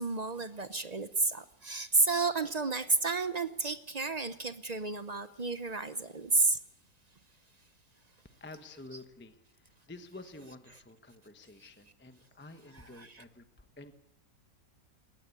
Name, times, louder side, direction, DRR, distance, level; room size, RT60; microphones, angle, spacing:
voice 1, 0.0-6.6 13.0-13.2, right 3 dB, 50° right, 0.4 m, -31 dB
voice 2, 8.2-13.9, left 2 dB, 10° left, 0.8 m, -50 dB
20.0 x 19.0 x 8.4 m
omnidirectional pair, 2.0 m